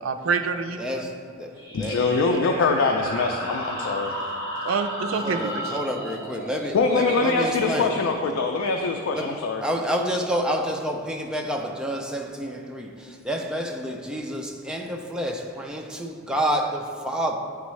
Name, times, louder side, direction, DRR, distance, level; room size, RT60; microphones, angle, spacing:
voice 1, 0.0-1.1 4.6-5.8, right 5 dB, 80° right, 8 dB, 0.4 m, -27 dB
voice 2, 0.8-1.5 1.8-2.0 5.2-7.9 9.1-9.3 9.6-17.4, equal, 5° right, 1 dB, 0.5 m, -29 dB
sound 1, 1.5-8.8, equal, 20° left, 1.4 m, -35 dB
voice 3, 1.7-4.2 6.7-9.6, left 3 dB, 80° left, 3 dB, 0.4 m, -23 dB
9.4 x 3.5 x 3.1 m, 2.4 s
head